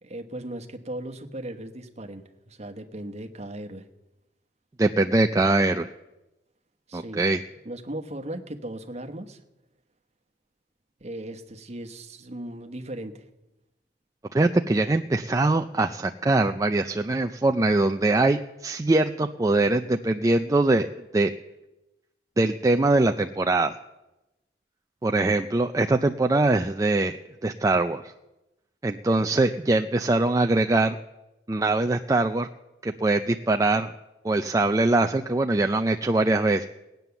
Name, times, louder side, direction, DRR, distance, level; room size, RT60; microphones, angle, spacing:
voice 1, 0.0-3.9 6.9-7.2 7.6-9.4 11.0-13.2, right 1 dB, 40° right, 6 dB, 1.2 m, -37 dB
voice 2, 4.8-5.9 6.9-7.4 14.3-20.9 21.1-21.3 22.4-23.8 25.0-27.1 27.4-28.0 28.8-31.0 31.5-32.5 32.8-33.9 34.2-36.7, right 2 dB, 20° right, 6 dB, 0.4 m, -22 dB
18.5 x 9.2 x 7.0 m, 0.99 s
head